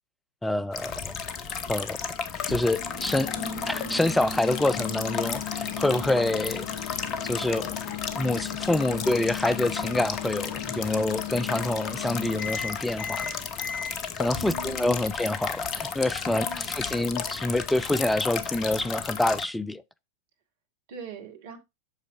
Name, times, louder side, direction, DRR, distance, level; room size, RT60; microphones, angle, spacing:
voice 1, 0.4-1.2 1.7-2.0 2.5-3.3 3.7-6.9 7.2-7.8 8.1-13.3 14.2-19.8, left 1 dB, 5° left, 0.4 m, -27 dB
sound 1, 0.7-19.5, left 6 dB, 35° left, 0.9 m, -34 dB
Microwave oven, 2.4-13.9, left 8 dB, 50° left, 1.3 m, -36 dB
voice 2, 5.8-6.1 14.3-15.1 16.3-16.7 20.9-21.6, right 2 dB, 55° right, 1.9 m, -41 dB
8.1 x 6.4 x 2.6 m
figure-of-eight pair, 90°, 0 cm